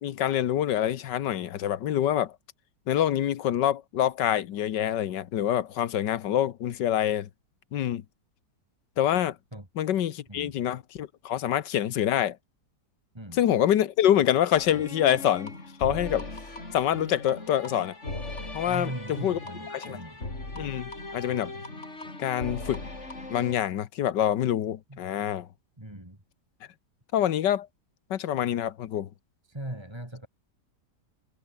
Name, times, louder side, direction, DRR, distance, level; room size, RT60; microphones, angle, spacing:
voice 1, 0.0-2.3 2.9-7.3 7.7-8.0 9.0-9.4 9.8-12.4 13.3-15.5 15.8-16.3 16.7-17.9 18.5-19.4 19.7-20.0 20.5-21.5 22.2-22.8 23.3-25.5 27.1-27.7 28.1-29.1, left 11 dB, 85° left, 1.7 m, -26 dB
sound 1, 14.5-23.6, left 2 dB, 40° left, 5.3 m, -38 dB
voice 2, 18.6-20.2 24.9-25.0 25.8-26.2 29.4-30.3, right 1 dB, 15° right, 3.8 m, -39 dB
omnidirectional pair, 1.8 m